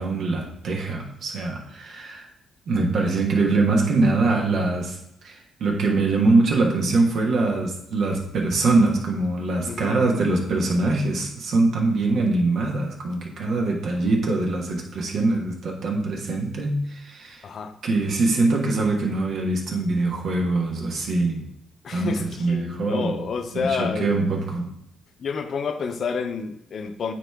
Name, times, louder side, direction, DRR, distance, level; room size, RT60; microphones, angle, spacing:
voice 1, 0.0-2.3 2.7-5.0 5.2-17.4 17.8-21.5 21.9-23.1 23.5-24.7, right 3 dB, 65° right, 0 dB, 1.3 m, -23 dB
voice 2, 9.7-10.1 17.4-17.7 21.8-24.2 25.2-27.1, left 5 dB, 55° left, 8 dB, 0.6 m, -29 dB
9.0 x 3.1 x 3.5 m, 0.80 s
cardioid pair, 90°, 0 cm